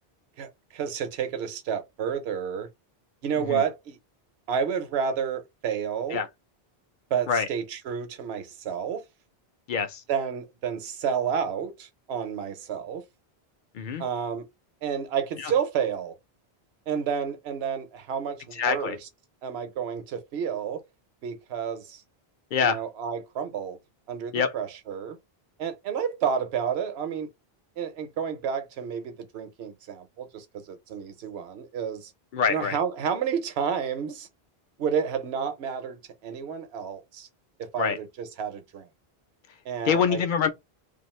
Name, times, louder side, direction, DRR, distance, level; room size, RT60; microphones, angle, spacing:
voice 1, 0.4-2.7 3.2-4.0 4.5-6.2 7.1-9.0 10.1-13.0 14.0-14.4 14.8-16.1 16.9-19.1 19.4-20.8 21.2-22.0 22.6-23.8 24.1-25.2 25.6-27.3 27.8-32.1 32.5-34.3 34.8-37.3 37.6-38.9 39.7-40.2, right 7 dB, 80° right, 0.9 m, -30 dB
voice 2, 9.7-10.0 13.7-14.0 15.4-15.5 18.6-19.0 22.5-22.8 24.3-24.5 32.3-32.8 37.8-38.0 39.8-40.5, left 6 dB, 60° left, 0.6 m, -25 dB
2.5 x 2.4 x 3.0 m
omnidirectional pair, 1.0 m